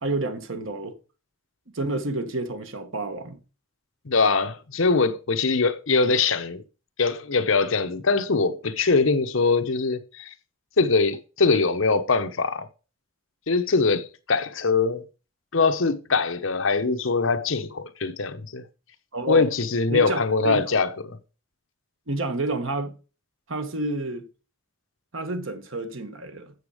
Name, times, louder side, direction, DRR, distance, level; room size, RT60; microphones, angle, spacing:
voice 1, 0.0-1.0 1.7-3.4 19.1-19.5 19.9-20.8 22.1-23.0 23.5-24.3 25.1-26.5, right 2 dB, 70° right, 1.4 m, -29 dB
voice 2, 4.0-6.6 7.0-10.3 10.8-12.7 13.5-15.1 15.5-18.6 19.3-21.2, left 4 dB, 70° left, 0.9 m, -22 dB
8.1 x 7.1 x 5.0 m
head